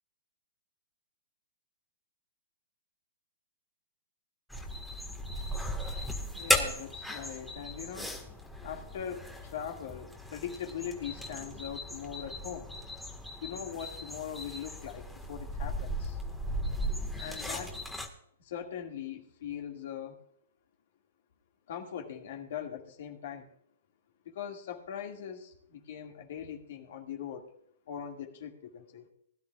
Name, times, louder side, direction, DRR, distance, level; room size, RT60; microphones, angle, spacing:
sound 1, 4.5-18.1, equal, ahead, 1.6 m, -36 dB
voice 1, 6.3-8.2 8.6-12.7 13.4-16.2 17.2-17.7 18.4-20.2 21.7-23.5 24.3-27.5 27.9-29.1, left 8 dB, 60° left, 3 dB, 2.1 m, -41 dB
20.5 x 11.5 x 2.4 m, 0.69 s
hypercardioid pair, 125°, 0 cm